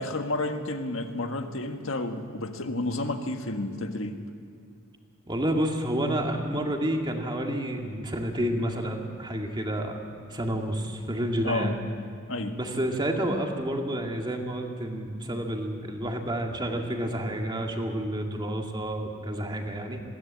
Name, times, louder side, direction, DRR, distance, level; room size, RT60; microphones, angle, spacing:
voice 1, 0.0-4.2 11.4-11.8 12.3-12.6, left 2 dB, 65° left, 6 dB, 1.6 m, -31 dB
voice 2, 5.3-10.0 10.3-11.8 12.5-20.0, right 1 dB, 20° right, 2 dB, 2.1 m, -29 dB
21.0 x 17.0 x 8.6 m, 2.3 s
head